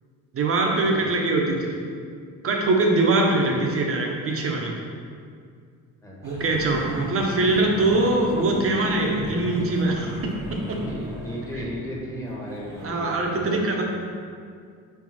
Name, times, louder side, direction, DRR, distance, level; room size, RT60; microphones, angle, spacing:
voice 1, 0.3-1.7 2.4-4.7 6.2-10.3 10.7-10.8 12.8-13.8, right 2 dB, 45° right, 1 dB, 0.9 m, -22 dB
voice 2, 6.0-6.7 10.8-13.6, equal, 10° left, -5 dB, 1.1 m, -35 dB
sound 1, 6.2-12.0 12.3-12.9, equal, 10° right, 1.0 m, -35 dB
5.3 x 4.6 x 4.2 m, 2.2 s
cardioid pair, 155°, 32 cm